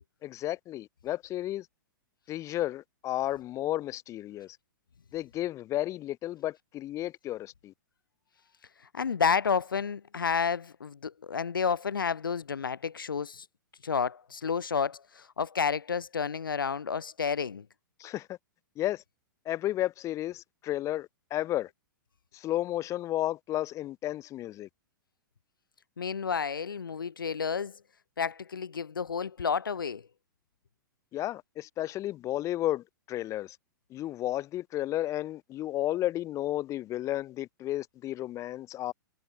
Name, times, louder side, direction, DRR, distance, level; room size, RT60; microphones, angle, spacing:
voice 1, 0.2-1.7 2.3-4.6 5.1-7.7 18.0-18.4 18.8-19.0 19.4-21.7 22.3-24.7 31.1-33.6 33.9-38.9, left 14 dB, 25° left, 1.0 m, -33 dB
voice 2, 8.9-13.5 13.8-17.7 26.0-27.8 28.2-30.0, left 6 dB, 80° left, 0.5 m, -30 dB
figure-of-eight pair, 105°, 11 cm